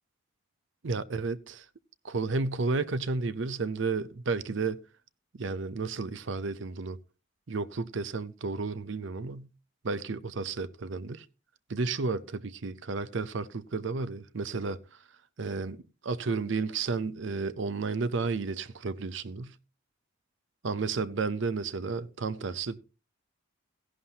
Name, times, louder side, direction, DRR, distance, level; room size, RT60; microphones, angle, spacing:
voice 1, 0.8-1.7 2.0-4.8 5.3-7.0 7.5-9.5 9.9-11.3 11.7-14.8 15.4-19.6 20.6-22.8, right 4 dB, 60° right, 0.6 m, -32 dB
15.0 x 11.0 x 2.8 m
head